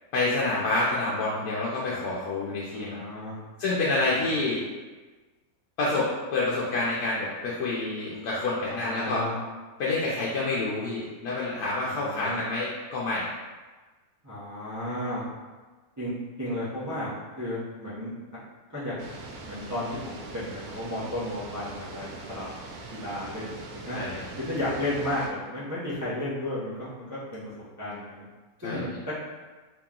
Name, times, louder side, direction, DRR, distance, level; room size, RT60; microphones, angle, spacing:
voice 1, 0.1-3.0 3.6-4.6 5.8-9.2 9.8-13.3 23.9-24.2 28.6-29.0, left 2 dB, 80° left, -6 dB, 1.1 m, -28 dB
voice 2, 2.7-3.3 4.1-4.4 8.6-9.4 11.8-12.4 14.2-15.2 16.0-16.1 16.4-18.1 18.7-19.0 19.5-22.4 22.9-24.0 24.4-27.5 27.8-28.2 28.6-29.2, left 1 dB, 20° right, -11 dB, 0.6 m, -33 dB
sound 1, 19.0-25.3, right 3 dB, 90° right, 1.1 m, -42 dB
3.0 x 2.9 x 3.6 m, 1.3 s
omnidirectional pair, 1.6 m